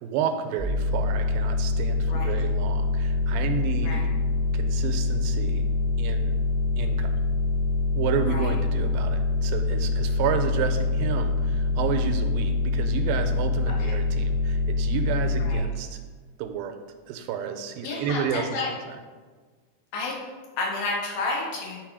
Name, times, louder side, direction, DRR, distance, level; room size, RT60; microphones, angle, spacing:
voice 1, 0.0-4.1 4.5-5.6 6.0-6.3 6.8-7.1 8.0-16.0 16.4-16.8 17.1-19.0, right 7 dB, 85° right, 6 dB, 2.3 m, -31 dB
sound 1, 0.6-15.6, left 2 dB, 40° left, 1.7 m, -25 dB
voice 2, 17.8-18.7 19.9-20.2 20.6-21.8, left 3 dB, 65° left, -2 dB, 2.9 m, -31 dB
9.1 x 4.3 x 4.8 m, 1.4 s
omnidirectional pair, 4.3 m